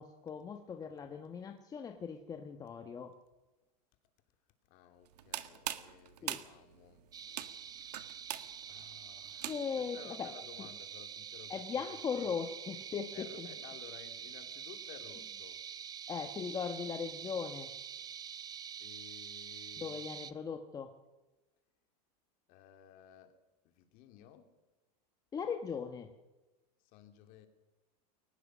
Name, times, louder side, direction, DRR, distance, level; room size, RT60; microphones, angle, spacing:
voice 1, 0.0-3.1 6.2-6.4 9.5-10.3 11.5-13.5 16.1-17.7 19.8-20.9 25.3-26.1, left 6 dB, 20° left, 6 dB, 1.3 m, -39 dB
voice 2, 4.7-7.1 7.6-7.8 8.3-8.4 8.7-12.3 13.1-15.6 18.8-20.0 22.5-23.4 23.6-24.6 26.8-27.5, left 10 dB, 45° left, 7 dB, 2.9 m, -56 dB
sound 1, 5.1-9.9, right 13 dB, 85° right, 1.8 m, -43 dB
sound 2, 7.1-20.3, right 8 dB, 20° right, 0.9 m, -46 dB
22.0 x 19.5 x 6.3 m, 1.1 s
supercardioid pair, 150°, 20 cm